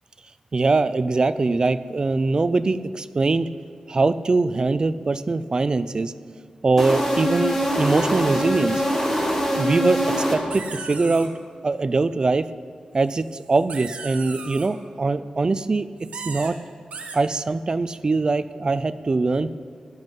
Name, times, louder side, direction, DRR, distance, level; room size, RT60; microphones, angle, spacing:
voice 1, 0.5-3.5 3.9-6.1 6.6-8.8 9.6-11.3 11.6-12.5 12.9-15.9 16.2-16.6 17.1-19.5, right 3 dB, 35° right, 14 dB, 0.4 m, -22 dB
sound 1, 6.8-10.8, equal, 15° left, 1.9 m, -24 dB
sound 2, 10.5-11.3 13.1-14.7 16.0-16.5 16.9-17.2, right 4 dB, 75° right, 1.4 m, -37 dB
13.5 x 11.0 x 5.3 m, 2.2 s
wide cardioid pair, 130°, 2 cm